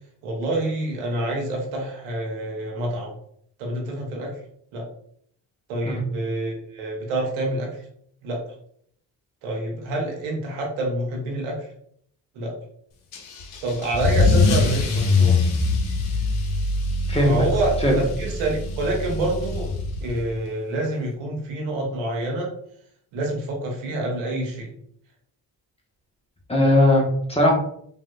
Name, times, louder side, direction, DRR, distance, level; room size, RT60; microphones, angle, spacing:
voice 1, 0.2-3.1 3.6-4.3 4.7-4.9 5.7-7.8 8.2-8.4 9.4-11.6 12.3-12.5 13.6-15.4 17.2-19.7 20.0-22.5 23.1-24.7, right 1 dB, 80° right, 0 dB, 1.0 m, -27 dB
Car / Engine starting / Accelerating revving vroom, 13.1-20.3, left 3 dB, 80° left, 0.7 m, -23 dB
voice 2, 26.5-27.5, left 1 dB, 10° left, -1 dB, 1.1 m, -18 dB
3.3 x 2.6 x 2.3 m, 0.66 s
hypercardioid pair, 45°, 49 cm